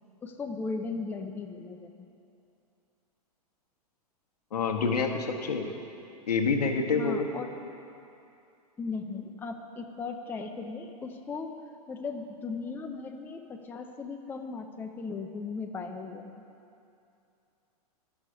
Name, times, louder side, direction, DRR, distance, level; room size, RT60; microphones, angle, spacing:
voice 1, 0.2-1.9 6.9-7.5 8.8-11.6 11.9-16.4, left 4 dB, 10° left, 4 dB, 0.4 m, -37 dB
voice 2, 4.5-5.7 6.3-7.3, left 4 dB, 80° left, 2 dB, 1.0 m, -27 dB
11.5 x 5.5 x 4.8 m, 2.7 s
hypercardioid pair, 110°, 20 cm